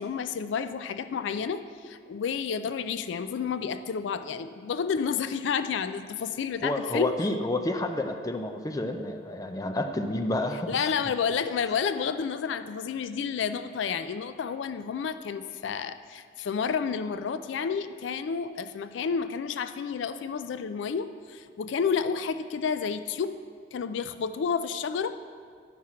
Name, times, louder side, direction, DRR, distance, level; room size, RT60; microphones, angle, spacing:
voice 1, 0.0-7.1 10.7-23.4 23.7-25.2, left 6 dB, 80° left, 11 dB, 0.3 m, -30 dB
voice 2, 6.6-10.7, left 1 dB, 20° left, 4 dB, 0.4 m, -29 dB
11.0 x 5.7 x 4.8 m, 2.2 s
head